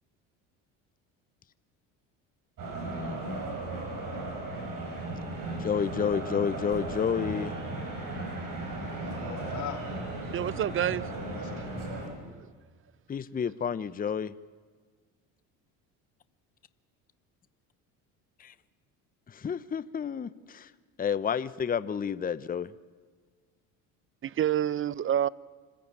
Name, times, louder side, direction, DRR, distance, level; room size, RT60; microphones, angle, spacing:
sound 1, 2.6-12.1, right 2 dB, 55° right, 7.2 m, -36 dB
voice 1, 2.8-3.4 5.6-7.6 13.1-14.3 18.4-18.5 19.3-20.7 21.0-22.7, left 7 dB, 20° left, 0.8 m, -30 dB
voice 2, 7.7-8.1 8.6-9.8 11.2-11.9, left 10 dB, 50° left, 5.1 m, -43 dB
voice 3, 10.3-11.1 12.2-12.5 24.2-25.3, right 10 dB, 35° right, 0.6 m, -28 dB
26.0 x 15.0 x 8.8 m
supercardioid pair, 85°, 39 cm